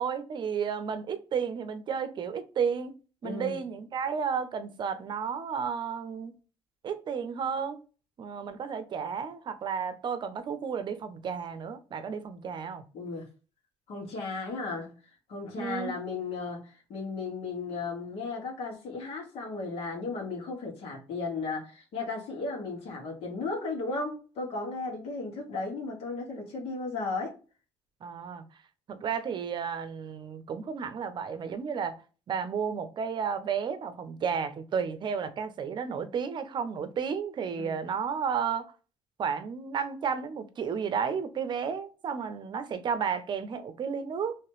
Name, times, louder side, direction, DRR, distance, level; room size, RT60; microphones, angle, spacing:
voice 1, 0.0-2.9 3.2-6.3 6.8-7.8 8.2-12.8 15.6-16.0 28.0-28.4 28.9-32.0 32.3-38.7 39.2-44.4, right 6 dB, 45° right, 0.7 m, -32 dB
voice 2, 3.2-3.6 12.9-13.3 13.9-14.9 15.3-27.4 37.6-37.8, left 3 dB, 70° left, 1.7 m, -35 dB
3.2 x 2.9 x 3.1 m
cardioid pair, 100°, 11 cm